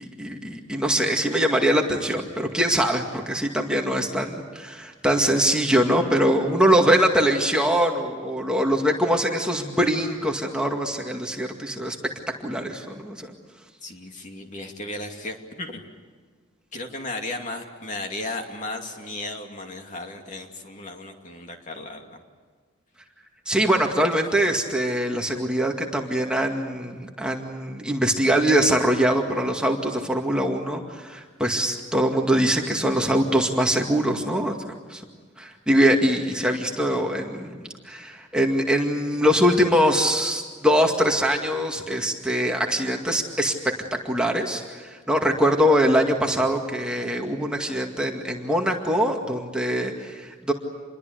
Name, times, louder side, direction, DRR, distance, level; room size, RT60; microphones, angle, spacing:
voice 1, 0.0-12.0 12.4-13.3 23.5-34.6 34.9-35.0 35.4-43.5 43.9-50.5, equal, 5° right, 1 dB, 2.1 m, -23 dB
voice 2, 13.8-15.9 16.7-22.2, left 2 dB, 40° left, 3 dB, 2.6 m, -35 dB
28.0 x 22.0 x 8.2 m, 1.5 s
head